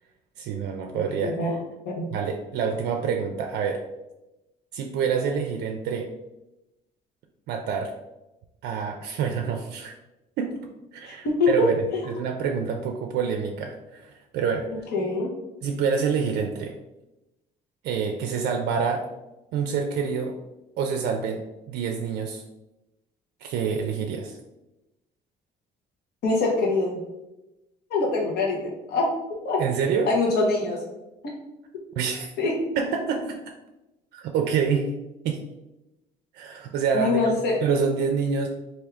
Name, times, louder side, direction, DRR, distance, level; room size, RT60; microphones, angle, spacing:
voice 1, 0.4-1.5 2.1-3.8 4.7-6.1 7.5-7.9 8.6-9.9 10.4-10.6 10.9-14.8 15.6-16.8 17.8-19.1 19.5-20.3 20.8-21.4 21.7-22.4 23.4-24.4 29.6-30.1 32.0-32.3 32.8-33.5 34.1-34.9 35.2-35.4 36.3-38.5, right 6 dB, 75° right, 3 dB, 0.4 m, -27 dB
voice 2, 11.0-12.0 14.7-15.3 26.2-27.0 27.9-29.1 29.4-29.6 30.1-30.8 32.4-32.5 36.9-37.6, left 3 dB, 70° left, -1 dB, 1.1 m, -24 dB
3.4 x 2.7 x 3.5 m, 0.98 s
cardioid pair, 110°, 17 cm